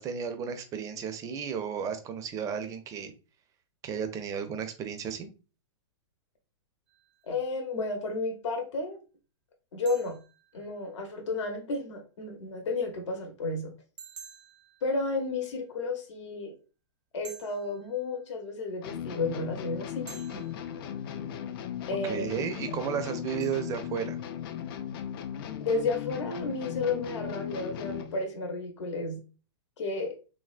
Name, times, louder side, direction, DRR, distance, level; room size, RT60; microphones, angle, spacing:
voice 1, 0.0-3.1 3.8-5.3 22.0-24.2, right 7 dB, 20° right, 8 dB, 0.4 m, -33 dB
sound 1, 6.9-7.6 9.9-11.3 14.0-15.7 17.2-18.6 20.1-21.4 23.4-24.6, right 7 dB, 75° right, 0.6 m, -52 dB
voice 2, 7.2-9.0 9.7-10.2 10.5-13.7 14.8-16.5 17.1-20.4 21.9-22.3 25.6-29.2 29.8-30.1, left 3 dB, 75° left, 3 dB, 0.8 m, -32 dB
sound 2, 18.8-28.2, left 9 dB, 50° left, 0.4 m, -37 dB
3.3 x 2.1 x 2.4 m, 0.34 s
hypercardioid pair, 130°, 15 cm